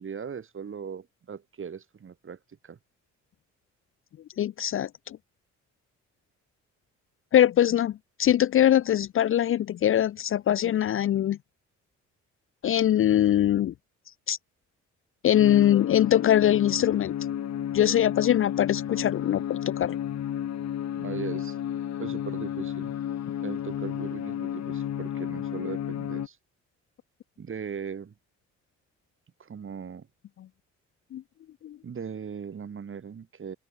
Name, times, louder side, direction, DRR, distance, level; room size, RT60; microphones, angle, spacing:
voice 1, 0.0-2.8 21.0-21.6 22.0-22.9 23.4-26.4 27.4-28.1 29.4-30.1 31.8-33.6, right 6 dB, 45° right, 3.6 m, -38 dB
voice 2, 4.4-5.2 7.3-11.4 12.6-13.7 14.3-14.4 15.2-17.1 17.7-20.0 31.1-31.2 31.6-31.8, left 11 dB, 45° left, 0.4 m, -22 dB
sound 1, 15.3-26.3, left 10 dB, 60° left, 2.3 m, -32 dB
cardioid pair, 90°, 30 cm